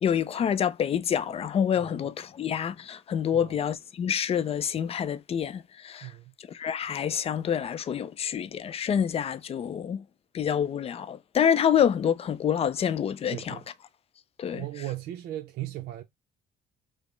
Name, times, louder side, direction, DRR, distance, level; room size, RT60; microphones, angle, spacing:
voice 1, 0.0-6.1 6.5-10.0 10.3-13.6 14.4-14.6, left 8 dB, 35° left, 0.4 m, -27 dB
voice 2, 6.0-6.3 13.3-13.7 14.5-16.0, right 14 dB, 70° right, 0.5 m, -37 dB
5.1 x 2.0 x 3.1 m
cardioid pair, 110°, 17 cm